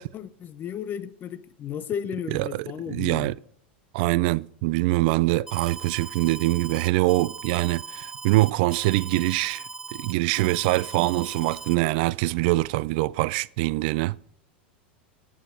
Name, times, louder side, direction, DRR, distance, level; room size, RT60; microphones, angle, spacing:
voice 1, 0.0-3.4, left 9 dB, 35° left, 0.7 m, -34 dB
voice 2, 2.3-3.3 3.9-9.7 9.9-14.2, right 20 dB, 60° right, 0.3 m, -24 dB
Alarm, 5.5-11.8, right 3 dB, 10° right, 0.7 m, -39 dB
14.0 x 8.9 x 4.1 m
hypercardioid pair, 100°, 6 cm